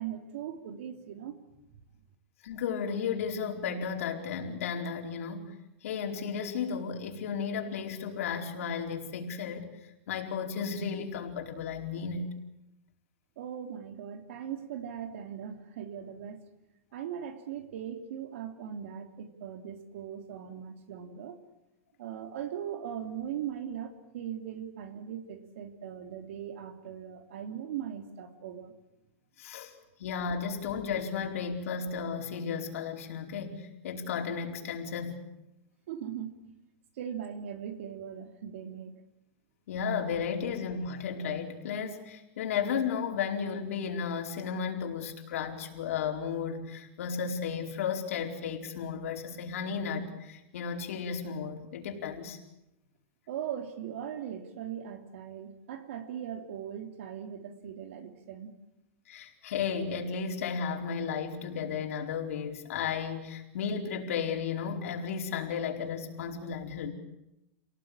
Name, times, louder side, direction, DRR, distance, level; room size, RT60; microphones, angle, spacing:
voice 1, 0.0-1.4 1.7-1.8 13.4-16.5 16.9-21.4 22.0-28.7 35.9-36.5 37.0-39.0 53.3-58.5, right 9 dB, 60° right, 7 dB, 3.1 m, -39 dB
voice 2, 2.4-5.5 5.8-9.7 10.1-12.3 29.4-29.7 30.0-35.2 39.7-52.4 59.1-66.9, left 6 dB, 70° left, 2 dB, 4.6 m, -34 dB
28.5 x 19.0 x 8.8 m, 0.89 s
supercardioid pair, 175°, 8 cm